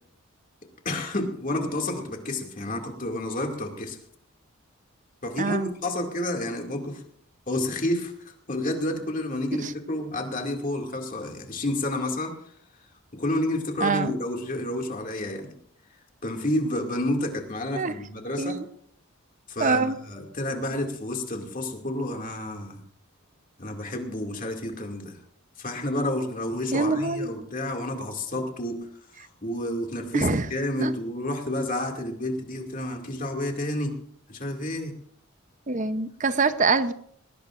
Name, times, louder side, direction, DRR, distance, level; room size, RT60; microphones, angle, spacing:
voice 1, 0.8-4.0 5.2-7.0 7.5-12.3 13.1-15.5 16.2-18.6 19.5-19.8 20.1-22.8 23.6-25.1 25.6-28.9 29.4-34.0 34.3-34.9, left 1 dB, 40° left, 2 dB, 2.3 m, -30 dB
voice 2, 5.4-5.7 9.6-9.7 13.8-14.1 17.8-17.9 18.4-18.6 19.6-20.0 26.7-27.3 30.1-30.5 30.8-30.9 35.7-36.9, right 4 dB, 35° right, 11 dB, 0.7 m, -24 dB
20.5 x 19.0 x 2.5 m, 0.67 s
head